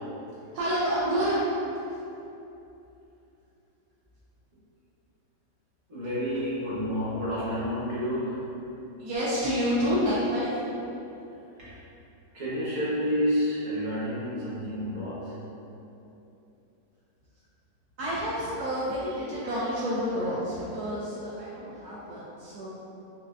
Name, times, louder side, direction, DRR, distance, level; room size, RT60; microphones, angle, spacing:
voice 1, 0.5-1.4 9.0-10.5 18.0-22.7, equal, 70° right, -9 dB, 1.0 m, -28 dB
voice 2, 5.9-8.4 12.3-15.3, equal, 45° right, -10 dB, 1.2 m, -29 dB
4.4 x 2.4 x 2.5 m, 2.9 s
omnidirectional pair, 1.8 m